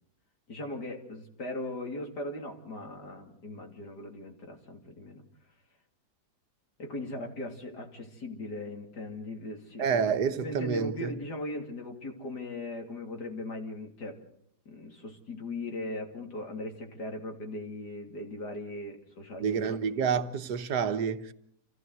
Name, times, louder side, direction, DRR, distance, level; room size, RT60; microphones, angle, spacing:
voice 1, 0.5-5.2 6.8-9.9 10.4-14.2 14.7-19.8, left 1 dB, 85° left, 3.6 m, -39 dB
voice 2, 9.8-11.1 19.4-21.3, right 6 dB, 80° right, 1.7 m, -28 dB
28.0 x 15.5 x 8.0 m
omnidirectional pair, 1.7 m